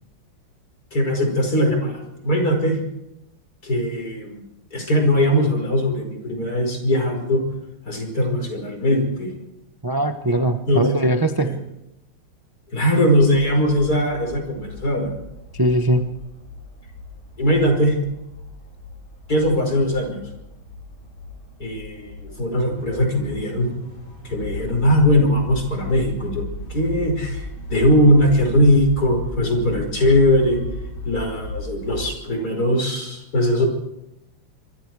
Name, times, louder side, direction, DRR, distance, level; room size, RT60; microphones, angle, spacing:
voice 1, 0.9-2.8 3.6-4.4 4.7-7.4 7.9-9.3 10.7-10.9 11.4-11.6 12.7-15.1 17.4-18.0 19.3-20.2 21.6-23.7 24.2-26.4 26.7-30.6 31.0-33.7, equal, 45° left, 3 dB, 5.8 m, -20 dB
voice 2, 9.8-11.5 15.6-16.1, right 1 dB, 30° right, 7 dB, 0.4 m, -20 dB
sound 1, 13.2-32.0, left 2 dB, 70° left, 5.1 m, -35 dB
25.5 x 25.0 x 4.8 m, 0.89 s
omnidirectional pair, 2.3 m